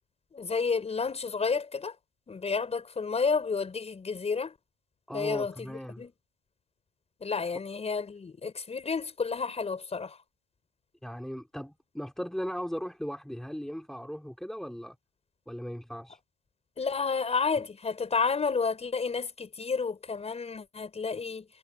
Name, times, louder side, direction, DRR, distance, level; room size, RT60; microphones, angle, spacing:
voice 1, 0.3-2.0 2.3-4.6 5.1-6.1 7.2-10.2 16.8-21.5, left 5 dB, 20° left, 5.5 m, -31 dB
voice 2, 5.1-6.0 11.0-14.9 15.5-16.2, equal, ahead, 2.4 m, -37 dB
supercardioid pair, 115°, 32 cm